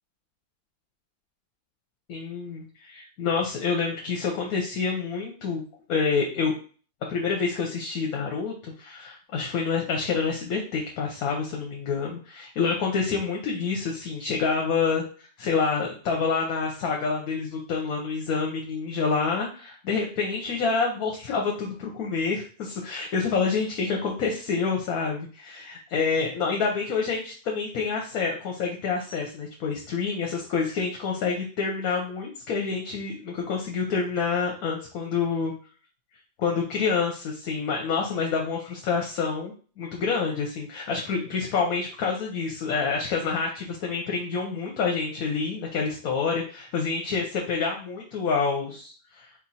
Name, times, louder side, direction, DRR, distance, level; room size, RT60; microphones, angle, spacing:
voice 1, 2.1-5.6 5.9-6.5 7.1-35.5 36.4-49.3, left 5 dB, 80° left, 0 dB, 1.3 m, -27 dB
4.4 x 2.4 x 4.1 m, 0.39 s
omnidirectional pair, 1.5 m